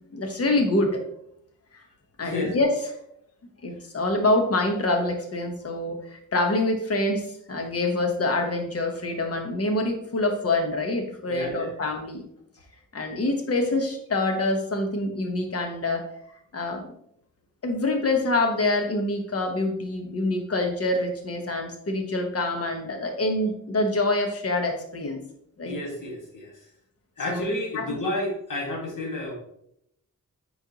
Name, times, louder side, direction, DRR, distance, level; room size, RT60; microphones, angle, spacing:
voice 1, 0.1-1.0 1.7-1.8 2.2-2.8 3.6-12.3 12.9-16.1 16.5-16.9 17.6-25.2 25.6-25.8 27.3-27.4 27.7-28.0, left 2 dB, 45° left, 4 dB, 1.1 m, -26 dB
voice 2, 2.2-2.6 11.3-11.7 25.6-26.5 27.2-29.3, left 1 dB, 75° left, 0 dB, 1.8 m, -31 dB
9.2 x 4.5 x 2.9 m, 0.73 s
wide cardioid pair, 150°, 32 cm